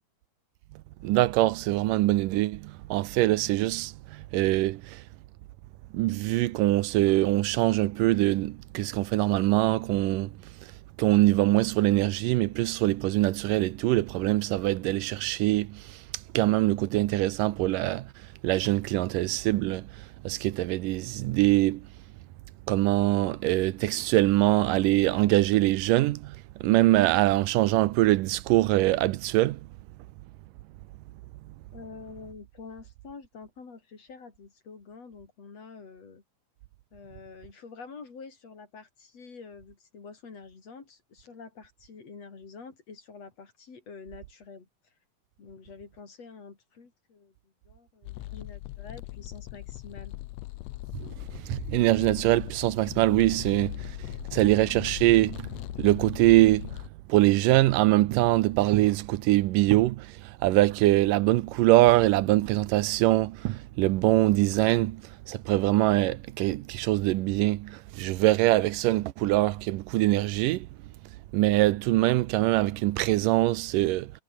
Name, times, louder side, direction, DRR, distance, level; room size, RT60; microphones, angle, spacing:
voice 1, 1.0-5.0 5.9-10.3 11.0-16.0 16.3-18.1 18.4-21.9 22.7-29.6 50.9-55.5 55.8-56.8 57.1-70.7 71.3-74.1, right 17 dB, 85° right, 2.3 m, -23 dB
voice 2, 31.7-36.2 36.9-44.9 45.4-50.1, left 5 dB, 50° left, 5.0 m, -47 dB
sound 1, 48.0-56.9, left 17 dB, 80° left, 1.5 m, -39 dB
omnidirectional pair, 3.8 m